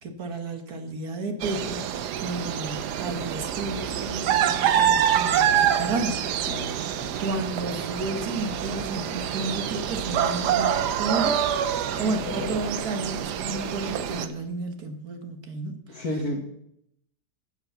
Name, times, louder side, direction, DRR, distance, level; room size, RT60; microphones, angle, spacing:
voice 1, 0.0-1.9 2.2-6.2 7.2-11.4 12.0-16.1, right 2 dB, 65° right, 6 dB, 1.9 m, -32 dB
sound 1, 1.4-14.3, right 9 dB, 85° right, 1.4 m, -26 dB
voice 2, 6.5-7.1 12.0-12.6 15.9-16.4, left 1 dB, 65° left, 1 dB, 2.0 m, -33 dB
11.5 x 8.2 x 7.0 m, 0.75 s
omnidirectional pair, 1.7 m